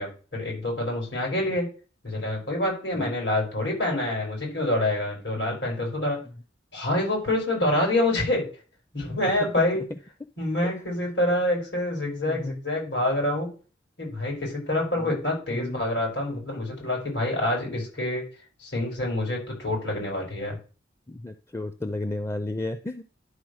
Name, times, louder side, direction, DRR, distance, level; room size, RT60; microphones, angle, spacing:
voice 1, 0.0-1.7 2.0-6.2 6.7-8.5 8.9-9.8 10.4-13.5 14.0-18.2 18.6-20.6, left 1 dB, 85° left, -2 dB, 5.6 m, -27 dB
voice 2, 12.3-12.6 15.0-15.2 15.5-15.8 17.6-17.8 21.1-23.0, left 2 dB, 15° left, 10 dB, 0.4 m, -33 dB
11.5 x 3.8 x 6.4 m, 0.37 s
head